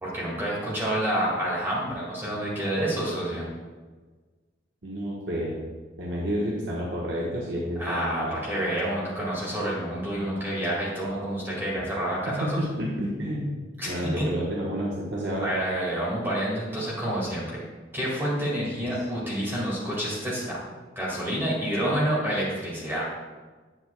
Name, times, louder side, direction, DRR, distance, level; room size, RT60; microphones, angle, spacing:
voice 1, 0.0-3.5 7.8-12.6 13.8-14.3 15.4-17.6 17.9-20.6 21.0-23.1, right 1 dB, 10° right, -7 dB, 2.0 m, -28 dB
voice 2, 4.8-5.6 6.0-8.4 12.3-13.5 13.8-15.5 18.9-19.0, equal, 85° right, -5 dB, 1.2 m, -30 dB
9.0 x 7.7 x 2.3 m, 1.4 s
head